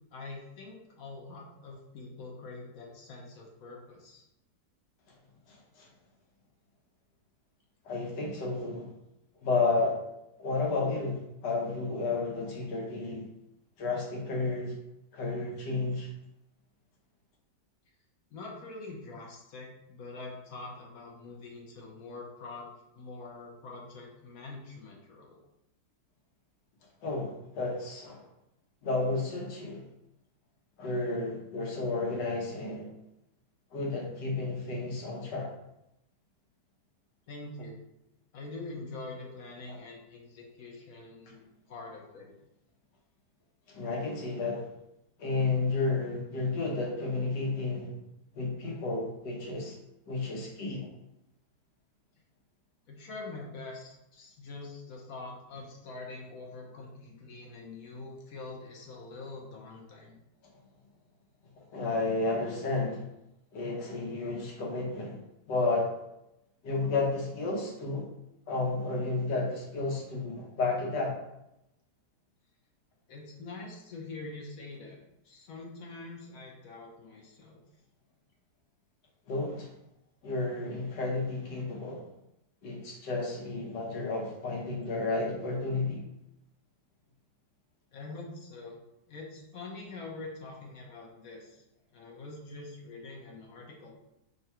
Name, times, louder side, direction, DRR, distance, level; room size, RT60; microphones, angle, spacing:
voice 1, 0.1-4.2 18.3-22.7 22.9-25.4 37.3-37.8 38.3-42.3 52.9-60.2 73.1-75.0 75.2-77.6 87.9-88.8 89.1-91.6 91.9-93.9, left 3 dB, 60° left, -1 dB, 1.1 m, -44 dB
voice 2, 5.5-5.9 7.8-8.9 9.4-10.0 10.4-13.3 13.8-14.7 15.1-16.1 27.0-28.2 28.8-29.8 30.8-32.9 33.7-35.5 39.7-39.8 43.7-44.7 45.2-48.0 48.3-49.8 50.1-50.9 61.5-63.1 63.5-65.2 65.5-65.9 66.6-68.1 68.5-71.2 79.3-79.7 80.2-82.0 82.6-86.0, left 3 dB, 80° left, -1 dB, 1.6 m, -32 dB
3.8 x 2.3 x 4.2 m, 0.87 s
omnidirectional pair, 1.8 m